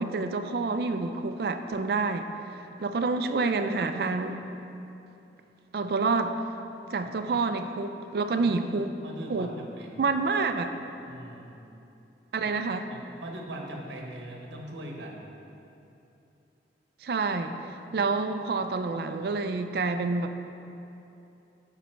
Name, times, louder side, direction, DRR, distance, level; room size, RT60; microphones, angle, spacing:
voice 1, 0.0-2.3 2.6-4.4 5.7-6.3 6.9-8.9 9.3-9.5 10.0-10.7 12.3-12.9 17.0-17.6 17.9-20.3, right 4 dB, 60° right, 7 dB, 0.4 m, -28 dB
voice 2, 9.0-10.1 11.1-11.6 12.4-12.5 12.9-15.3, right 1 dB, 85° right, 1 dB, 0.9 m, -41 dB
9.4 x 4.1 x 4.4 m, 2.8 s
head